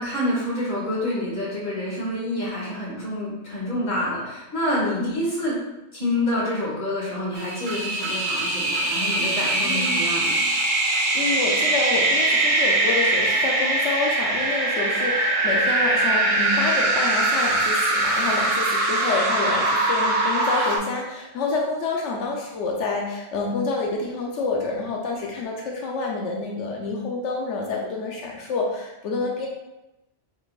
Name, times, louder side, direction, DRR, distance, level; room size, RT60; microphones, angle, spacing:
voice 1, 0.0-5.6 5.9-10.5, left 1 dB, 40° left, -7 dB, 1.9 m, -27 dB
voice 2, 4.8-5.2 9.6-10.1 10.9-29.5, left 3 dB, 90° left, -1 dB, 1.0 m, -28 dB
sound 1, 7.4-20.8, right 2 dB, 50° right, 0.8 m, -22 dB
5.5 x 4.0 x 2.4 m, 0.96 s
omnidirectional pair, 1.2 m